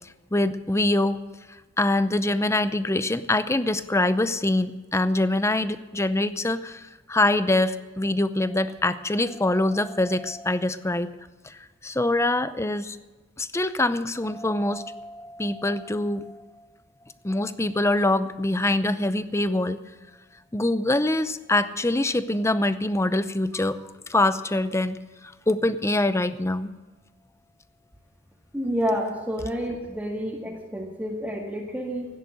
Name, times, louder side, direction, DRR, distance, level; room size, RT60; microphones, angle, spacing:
voice 1, 0.3-1.2 1.8-11.2 11.4-13.0 13.4-16.4 17.2-19.8 20.5-25.0 25.5-26.7, left 2 dB, 15° left, 13 dB, 0.6 m, -24 dB
voice 2, 28.5-32.1, equal, 10° right, -4 dB, 1.9 m, -29 dB
16.5 x 10.0 x 6.5 m, 1.2 s
head